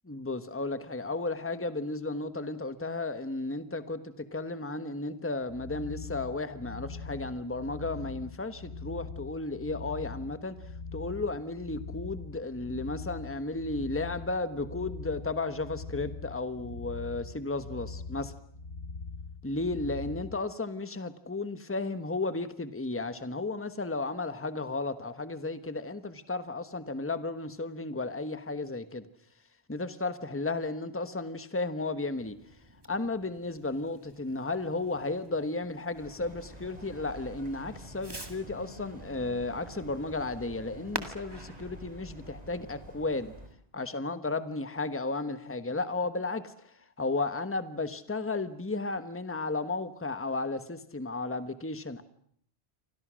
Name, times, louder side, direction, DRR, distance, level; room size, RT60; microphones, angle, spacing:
voice 1, 0.1-10.6 10.9-18.3 19.4-29.1 29.7-32.4 32.9-43.3 43.7-52.0, left 3 dB, 10° left, 11 dB, 1.2 m, -34 dB
sound 1, 5.5-20.4, left 4 dB, 75° left, 1.6 m, -42 dB
Fireworks, 32.1-43.5, right 1 dB, 20° right, 2.1 m, -48 dB
sound 2, 35.9-43.5, equal, 40° right, 3.6 m, -48 dB
28.5 x 25.0 x 6.3 m, 0.64 s
omnidirectional pair, 1.1 m